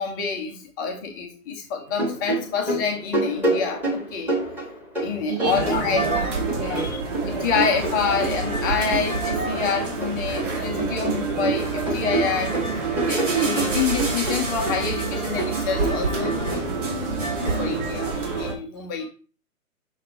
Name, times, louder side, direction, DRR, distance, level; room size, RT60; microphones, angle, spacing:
voice 1, 0.0-4.5 5.0-6.0 6.6-7.0 7.3-12.6 13.1-19.1, left 6 dB, 15° left, 1 dB, 0.6 m, -27 dB
sound 1, 1.9-6.2 6.5-9.4 9.7-10.5 10.8-16.6, right 2 dB, 5° right, 1.4 m, -28 dB
voice 2, 5.3-7.0 19.0-19.1, right 5 dB, 30° right, -5 dB, 4.5 m, -31 dB
sound 2, 5.4-18.5, right 4 dB, 55° right, 2.6 m, -27 dB
6.7 x 5.8 x 4.2 m, 0.38 s
figure-of-eight pair, 130°, 44 cm